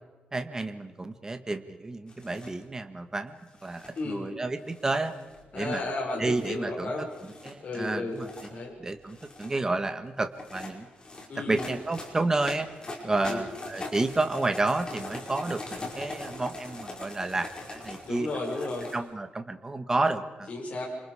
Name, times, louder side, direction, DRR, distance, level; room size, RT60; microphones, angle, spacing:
voice 1, 0.3-3.3 3.6-5.1 5.5-5.8 6.2-6.9 7.4-8.3 8.5-10.9 11.5-12.7 13.0-18.3 18.9-20.5, right 2 dB, 20° right, 7 dB, 1.6 m, -30 dB
sound 1, 2.1-2.6 3.5-4.0 4.7-5.5 6.2-6.5 7.1-7.5 8.1-8.5 9.0-9.6 10.3-19.0, left 2 dB, 30° left, 5.5 m, -42 dB
voice 2, 4.0-4.3 5.5-7.1 7.6-8.7 11.3-11.7 13.2-13.4 18.0-18.9 20.5-20.9, left 2 dB, 45° left, -2 dB, 6.2 m, -33 dB
30.0 x 27.0 x 5.0 m, 1.2 s
wide cardioid pair, 140°, 3 cm